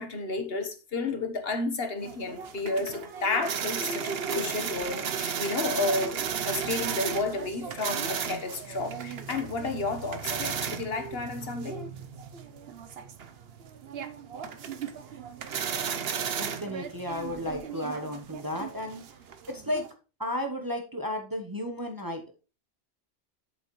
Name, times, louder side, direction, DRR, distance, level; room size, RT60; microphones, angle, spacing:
voice 1, 0.0-11.8, left 3 dB, 60° left, 1.4 m, -32 dB
sound 1, 2.0-19.9, right 7 dB, 65° right, 1.0 m, -35 dB
voice 2, 16.4-19.0 19.5-19.8 20.2-22.3, left 1 dB, 20° right, 0.9 m, -33 dB
8.4 x 7.4 x 3.1 m
omnidirectional pair, 1.2 m